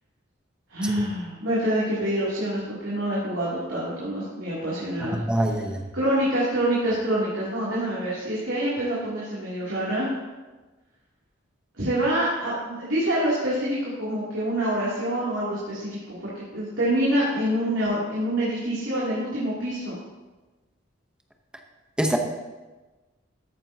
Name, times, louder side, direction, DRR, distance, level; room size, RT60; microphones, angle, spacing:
voice 1, 0.7-5.2 5.9-10.1 11.7-20.0, right 1 dB, 85° right, -8 dB, 2.9 m, -26 dB
voice 2, 5.1-5.8 22.0-22.2, right 1 dB, 5° right, 3 dB, 0.9 m, -25 dB
14.0 x 8.8 x 2.8 m, 1.2 s
head